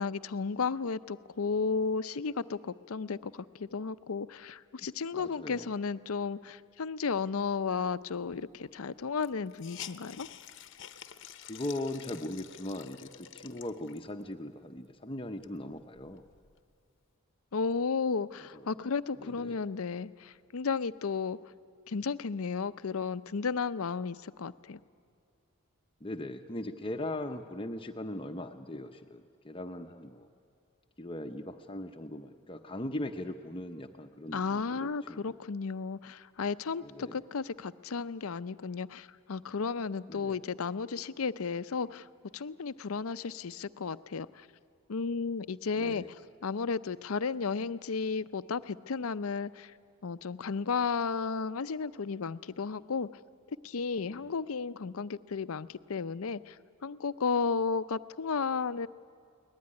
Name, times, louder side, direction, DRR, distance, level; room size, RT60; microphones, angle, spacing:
voice 1, 0.0-10.3 17.5-21.4 21.9-24.8 34.3-42.1 42.3-44.3 44.9-46.0 46.4-49.7 50.0-53.1 53.6-56.5 56.8-58.9, left 5 dB, 80° left, 14 dB, 0.6 m, -33 dB
voice 2, 5.1-5.7 11.4-16.2 18.4-18.7 19.2-19.6 26.0-30.3 31.0-35.4 36.8-37.2 40.1-40.4 45.8-46.1 54.0-54.3, left 1 dB, 25° left, 6 dB, 0.8 m, -39 dB
Hiss, 8.3-8.4 8.6-8.7 9.2-14.2 14.8-14.9 15.2-16.6, left 10 dB, 60° left, 0.9 m, -49 dB
23.0 x 19.5 x 9.8 m, 2.2 s
head